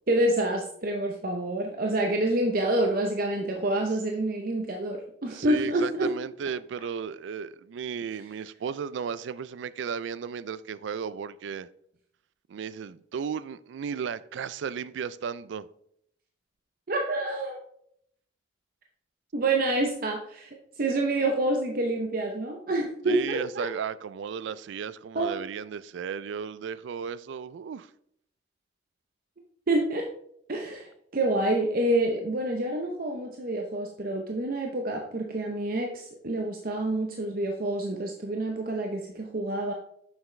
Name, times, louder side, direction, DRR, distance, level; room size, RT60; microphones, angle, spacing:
voice 1, 0.1-6.1 16.9-17.6 19.3-23.7 25.1-25.4 29.7-30.1 30.5-39.7, right 1 dB, 50° right, 0.7 m, -27 dB
voice 2, 5.3-11.7 12.5-15.7 23.1-27.9, right 7 dB, 75° right, 0.3 m, -35 dB
7.0 x 5.9 x 3.2 m
head